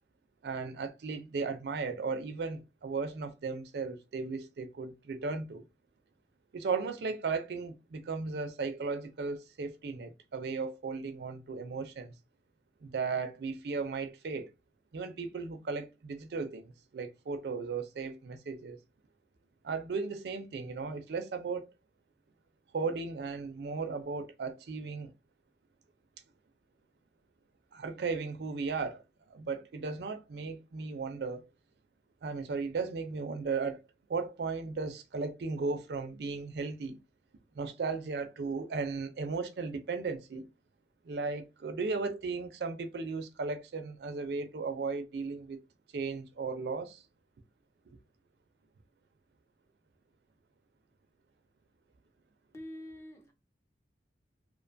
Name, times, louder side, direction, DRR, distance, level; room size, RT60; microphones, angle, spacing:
voice 1, 0.4-5.6 6.5-12.1 12.8-14.5 14.9-18.8 19.6-21.7 22.7-25.1 27.7-29.0 29.3-31.4 32.2-33.8 34.1-37.0 37.5-40.5 41.0-45.6 45.9-47.0 47.9-48.0, right 4 dB, 70° right, 0.4 m, -36 dB
voice 2, 52.5-53.3, left 1 dB, 15° left, 0.5 m, -45 dB
2.4 x 2.2 x 2.5 m
head